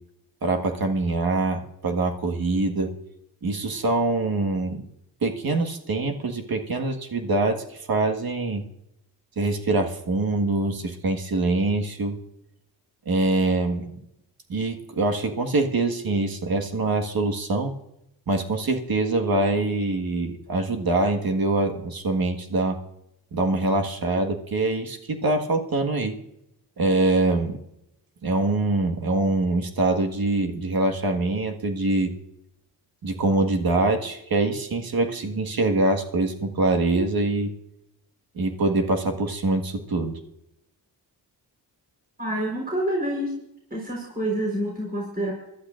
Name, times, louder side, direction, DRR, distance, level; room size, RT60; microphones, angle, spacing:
voice 1, 0.4-2.9 3.4-4.9 5.2-8.6 9.4-12.2 13.1-14.1 14.5-17.7 18.3-22.8 23.3-26.2 26.8-27.6 28.2-32.1 33.0-37.5 38.4-40.2, right 2 dB, 55° right, 4 dB, 1.7 m, -24 dB
voice 2, 42.2-43.4 43.7-45.3, right 1 dB, 20° right, -2 dB, 4.2 m, -27 dB
23.5 x 12.0 x 2.6 m, 0.84 s
supercardioid pair, 45°, 44 cm